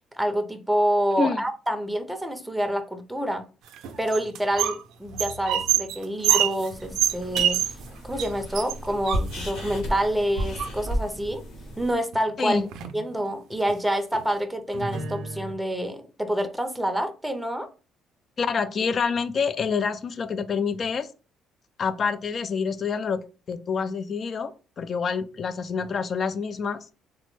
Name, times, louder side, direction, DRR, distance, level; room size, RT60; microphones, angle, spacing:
voice 1, 0.2-3.5 4.0-7.7 8.0-11.4 11.8-12.6 12.9-17.7, equal, 5° right, 0.5 m, -27 dB
sound 1, 3.7-4.8 5.1-7.9 8.2-8.3 8.5-9.7 10.4-11.0 12.1-12.2 12.5-13.0 13.5-13.7 14.1-14.2 14.7-15.5, right 10 dB, 80° right, 0.4 m, -27 dB
sound 2, 6.7-11.9, equal, 90° left, 1.3 m, -33 dB
voice 2, 18.4-21.1 21.8-23.2 23.5-26.9, left 5 dB, 45° left, 0.3 m, -27 dB
3.3 x 2.0 x 3.1 m
cardioid pair, 85°, 0 cm